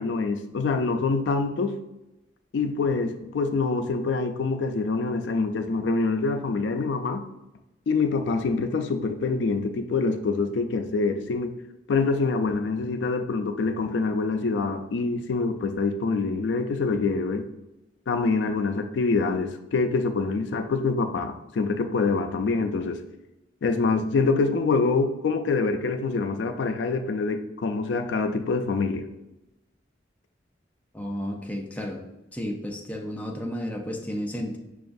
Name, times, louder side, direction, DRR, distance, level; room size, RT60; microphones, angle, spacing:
voice 1, 0.0-1.7 2.5-7.2 7.9-11.5 11.9-17.5 18.1-23.0 23.6-29.1, left 4 dB, 80° left, 6 dB, 0.4 m, -25 dB
voice 2, 30.9-32.0 32.3-34.6, equal, 10° left, 0 dB, 0.4 m, -32 dB
5.6 x 2.3 x 2.5 m, 0.95 s
head